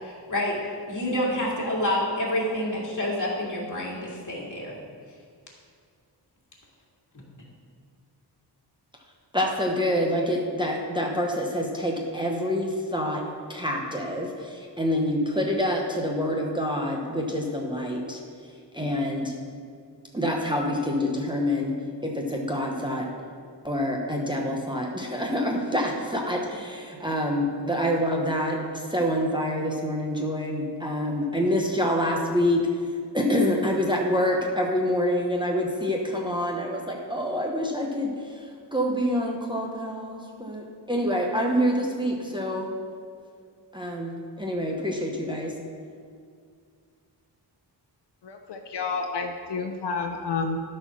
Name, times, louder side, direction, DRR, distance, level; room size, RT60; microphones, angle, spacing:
voice 1, 0.0-0.6 0.9-4.8, left 1 dB, 45° left, -4 dB, 2.3 m, -28 dB
voice 2, 9.3-13.2 13.5-18.2 18.7-19.3 20.1-21.7 22.0-23.1 23.6-32.6 33.1-42.7 43.7-45.5, equal, 10° right, -1 dB, 0.8 m, -26 dB
voice 3, 48.2-50.6, left 4 dB, 75° left, 4 dB, 0.7 m, -30 dB
13.0 x 4.4 x 6.0 m, 2.2 s
wide cardioid pair, 170°, 42 cm